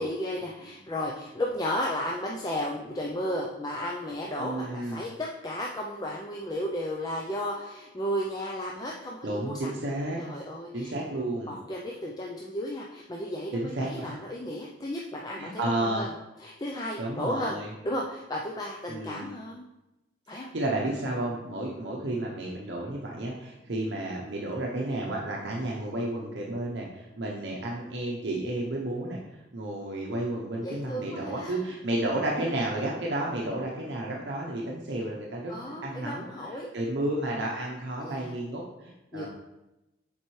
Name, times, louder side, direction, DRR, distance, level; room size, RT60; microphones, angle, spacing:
voice 1, 0.0-9.8 10.2-10.9 11.5-16.1 16.4-17.6 17.8-19.6 20.3-20.5 30.6-31.6 35.5-36.7 38.0-38.4 39.1-39.3, left 1 dB, 20° left, -2 dB, 0.4 m, -34 dB
voice 2, 4.4-5.0 9.2-10.2 10.7-11.5 13.5-14.2 15.3-16.1 17.0-17.7 18.9-19.3 20.3-29.2 29.5-35.5 35.8-39.3, right 1 dB, 70° right, -2 dB, 0.8 m, -32 dB
7.2 x 4.5 x 3.1 m, 0.97 s
head